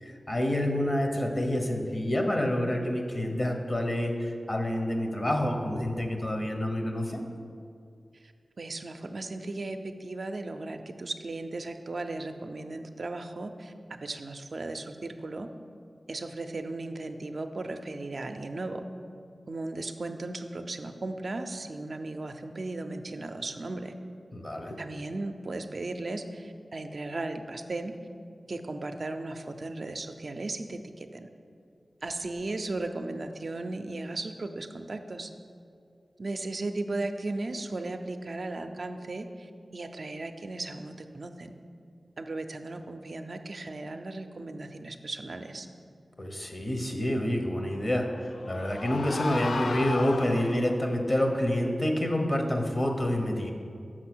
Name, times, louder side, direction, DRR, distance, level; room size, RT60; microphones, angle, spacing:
voice 1, 0.0-7.2 24.3-24.8 46.2-53.5, left 1 dB, 40° left, 3 dB, 1.0 m, -28 dB
voice 2, 8.6-15.5 16.1-18.8 19.5-23.9 24.8-28.0 28.5-31.3 32.0-35.3 36.2-41.5 42.2-45.7, right 2 dB, 65° right, 6 dB, 0.4 m, -36 dB
sound 1, 48.1-50.9, left 3 dB, 90° left, 0.3 m, -35 dB
6.1 x 5.5 x 6.1 m, 2.4 s
cardioid pair, 50°, 0 cm